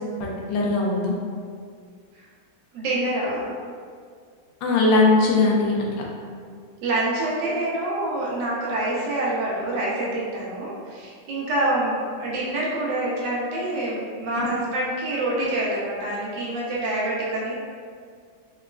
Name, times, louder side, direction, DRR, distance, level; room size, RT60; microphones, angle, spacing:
voice 1, 0.2-1.1 4.6-6.0 14.4-14.5, left 3 dB, 90° left, -2 dB, 1.3 m, -20 dB
voice 2, 2.7-3.6 6.8-17.5, right 1 dB, 85° right, -5 dB, 1.4 m, -26 dB
4.0 x 2.3 x 2.3 m, 2.1 s
omnidirectional pair, 2.0 m